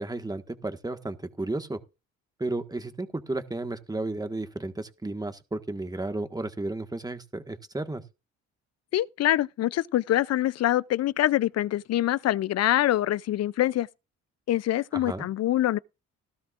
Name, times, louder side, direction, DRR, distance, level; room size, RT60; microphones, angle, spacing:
voice 1, 0.0-1.8 2.4-8.0 14.9-15.3, right 2 dB, 15° right, 1.6 m, -33 dB
voice 2, 8.9-13.9 14.5-15.8, left 13 dB, 55° left, 0.5 m, -25 dB
17.5 x 13.0 x 2.5 m
cardioid pair, 90°, 30 cm